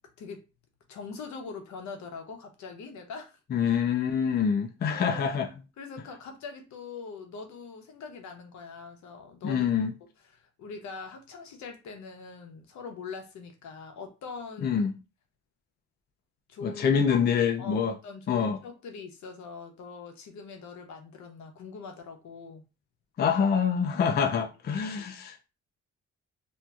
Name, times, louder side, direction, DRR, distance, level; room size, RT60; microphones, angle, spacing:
voice 1, 0.9-3.4 4.9-5.2 5.8-9.7 10.3-14.8 16.5-22.6 23.9-24.1 25.0-25.1, left 5 dB, 70° left, 0.8 m, -43 dB
voice 2, 3.5-5.5 9.4-9.9 14.6-14.9 16.6-18.0 18.3-18.6 23.2-25.5, left 7 dB, 35° left, 0.4 m, -26 dB
2.8 x 2.5 x 2.3 m
cardioid pair, 90°, 30 cm